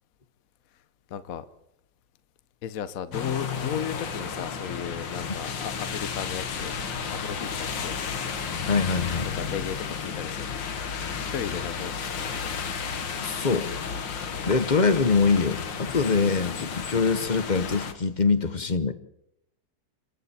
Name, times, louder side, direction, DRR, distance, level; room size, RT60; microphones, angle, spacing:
voice 1, 1.1-1.4 2.6-6.8 7.1-8.0 9.3-10.7 11.2-12.0 12.4-12.6 14.3-14.5, left 8 dB, 55° left, 13 dB, 1.2 m, -35 dB
sound 1, 3.1-17.9, left 6 dB, 80° left, 2.2 m, -33 dB
voice 2, 8.7-9.3 13.2-13.7 14.5-18.9, left 4 dB, 35° left, 12 dB, 0.8 m, -24 dB
29.5 x 22.0 x 4.3 m, 0.81 s
omnidirectional pair, 2.0 m